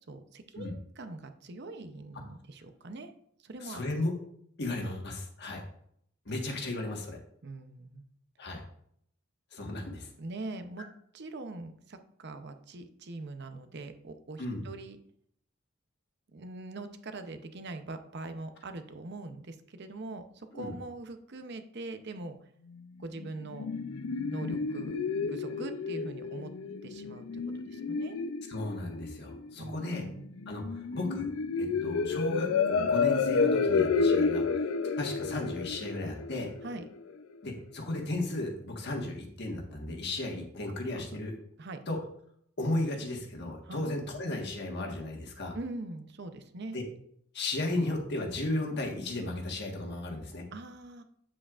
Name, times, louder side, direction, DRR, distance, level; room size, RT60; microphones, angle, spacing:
voice 1, 0.1-3.1 3.4-3.9 6.3-6.4 7.4-8.0 10.2-10.9 11.1-15.0 16.3-22.4 23.0-23.7 24.3-25.0 25.3-26.5 26.8-28.2 29.6-30.3 36.6-36.8 40.7-41.0 41.6-41.8 43.6-43.9 45.5-46.8 50.5-51.0, right 2 dB, 55° right, 8 dB, 0.7 m, -42 dB
voice 2, 3.6-4.1 4.6-5.6 6.2-7.2 8.4-8.6 9.5-10.1 14.4-14.6 20.5-20.7 28.5-30.0 30.5-31.3 31.6-34.4 35.0-36.5 37.4-41.4 41.9-42.0 42.6-45.6 46.7-46.8 47.3-50.4, left 2 dB, 55° left, 1 dB, 1.5 m, -35 dB
sound 1, 23.2-37.1, left 4 dB, 85° left, 0.5 m, -30 dB
8.5 x 7.7 x 2.5 m, 0.68 s
head